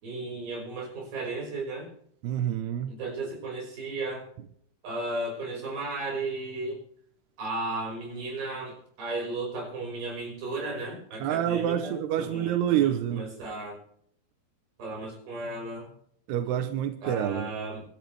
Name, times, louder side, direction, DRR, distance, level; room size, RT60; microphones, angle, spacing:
voice 1, 0.0-1.9 2.9-4.2 4.8-6.8 7.4-13.8 14.8-15.9 17.0-17.8, right 2 dB, 50° right, 7.6 m, -35 dB
voice 2, 2.2-3.0 11.2-13.3 16.3-17.5, right 10 dB, 75° right, 2.6 m, -27 dB
27.5 x 12.5 x 3.5 m
omnidirectional pair, 5.6 m